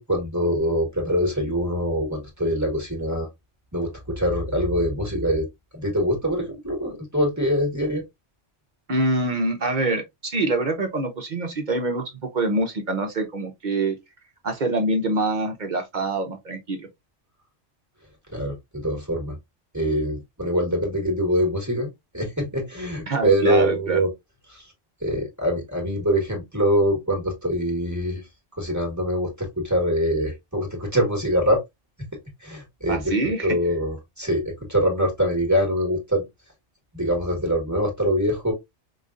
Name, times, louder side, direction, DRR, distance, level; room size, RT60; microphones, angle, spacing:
voice 1, 0.0-3.3 3.7-5.5 5.7-8.0 18.3-19.4 19.7-24.1 24.5-24.7 25.0-28.2 28.6-31.6 32.4-33.1 33.4-36.2 36.9-38.5, equal, 15° right, 1.3 m, -24 dB
voice 2, 8.9-14.0 14.4-16.9 23.1-24.0 32.9-33.6, right 2 dB, 45° right, 0.7 m, -25 dB
5.0 x 2.4 x 2.4 m
omnidirectional pair, 1.3 m